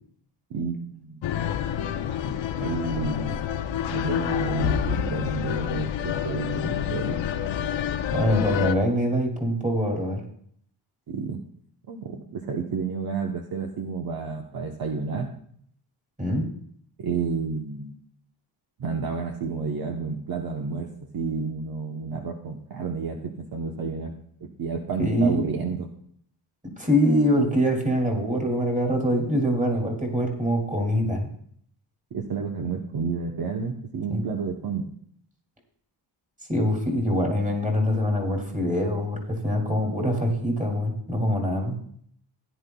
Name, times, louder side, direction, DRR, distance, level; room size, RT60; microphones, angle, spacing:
voice 1, 0.5-1.4 2.2-2.3 2.6-3.4 3.9-7.2 11.1-11.4 11.9-15.3 17.0-17.9 18.8-24.1 24.4-25.9 32.1-34.9, right 5 dB, 50° right, 2 dB, 0.9 m, -30 dB
sound 1, 1.2-8.7, left 10 dB, 75° left, 0.7 m, -28 dB
voice 2, 8.1-10.2 16.2-16.5 25.0-25.4 26.6-31.3 34.1-34.2 36.5-41.8, equal, 15° right, 1 dB, 2.5 m, -24 dB
16.5 x 10.0 x 2.3 m, 0.64 s
wide cardioid pair, 130°, 46 cm